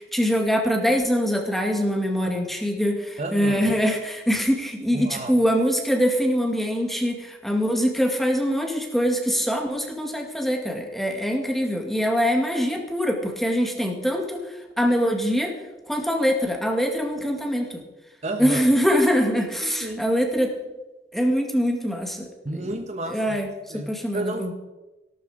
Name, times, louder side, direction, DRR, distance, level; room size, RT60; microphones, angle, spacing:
voice 1, 0.0-15.5 15.9-17.8 18.4-20.5 21.1-22.3 23.1-23.5 23.7-24.5, equal, ahead, 2 dB, 2.1 m, -23 dB
voice 2, 3.2-3.8 4.9-5.5 18.2-18.6 19.3-20.0 22.4-23.4 23.7-24.5, right 2 dB, 40° right, 6 dB, 1.2 m, -32 dB
17.5 x 12.5 x 5.0 m, 1.1 s
head